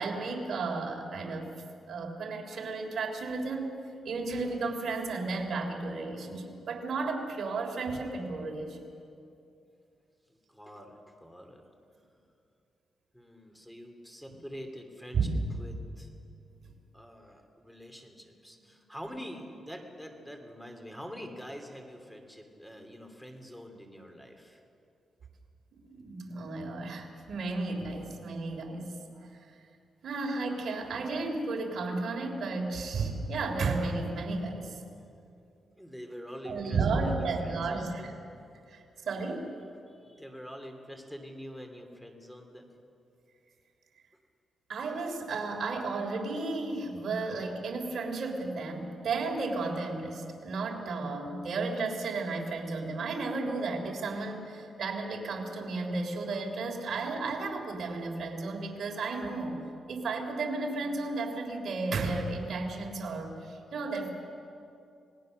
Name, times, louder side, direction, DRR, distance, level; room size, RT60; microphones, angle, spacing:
voice 1, 0.0-1.5 1.9-3.7 4.0-8.8 15.1-15.4 25.8-29.0 30.0-34.8 36.4-38.1 38.7-39.5 44.7-59.6 59.9-64.1, right 3 dB, 60° right, 1 dB, 3.4 m, -33 dB
voice 2, 10.3-11.6 13.1-16.1 16.9-24.6 35.8-38.2 39.9-42.7, equal, 5° left, 4 dB, 2.9 m, -45 dB
27.0 x 19.0 x 6.5 m, 2.6 s
cardioid pair, 110°, 0 cm